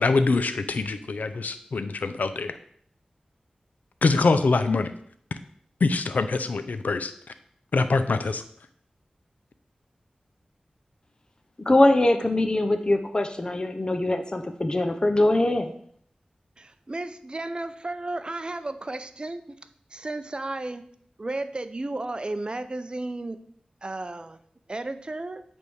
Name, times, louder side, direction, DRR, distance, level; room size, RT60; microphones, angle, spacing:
voice 1, 0.0-2.6 4.0-4.9 5.8-7.1 7.7-8.4, left 3 dB, 85° left, 10 dB, 0.5 m, -24 dB
voice 2, 11.7-15.7, left 1 dB, 30° left, 6 dB, 0.7 m, -22 dB
voice 3, 16.6-19.6 19.9-20.8 21.2-23.4 23.8-24.4 24.7-25.4, right 2 dB, 35° right, 10 dB, 0.6 m, -33 dB
8.1 x 3.5 x 6.3 m, 0.63 s
wide cardioid pair, 80°, 3 cm